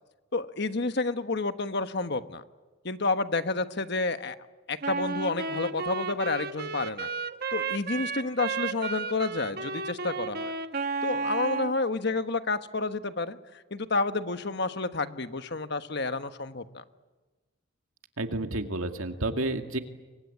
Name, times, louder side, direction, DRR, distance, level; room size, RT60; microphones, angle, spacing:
voice 1, 0.3-2.4 2.8-4.4 4.7-7.1 7.5-10.5 11.0-16.8, left 3 dB, 55° left, 10 dB, 1.3 m, -30 dB
Wind instrument woodwind instrument, 4.8-11.8, right 4 dB, 45° right, 1.2 m, -33 dB
voice 2, 18.2-19.8, right 2 dB, 85° right, 6 dB, 2.2 m, -30 dB
28.5 x 23.5 x 8.5 m, 1.2 s
head